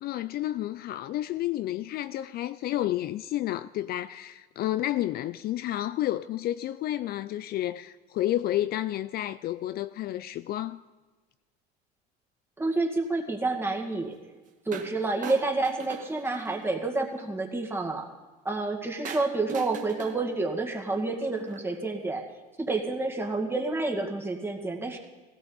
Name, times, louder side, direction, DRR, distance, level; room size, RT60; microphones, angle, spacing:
voice 1, 0.0-10.8, left 13 dB, 50° left, 0.4 m, -30 dB
voice 2, 12.6-14.2 14.7-18.1 18.4-22.2 22.6-25.0, right 3 dB, 10° right, 2.1 m, -29 dB
sound 1, 14.7-15.0 15.2-16.8 19.0-21.8, right 7 dB, 40° right, 1.6 m, -41 dB
17.0 x 17.0 x 4.1 m
supercardioid pair, 105°, 20 cm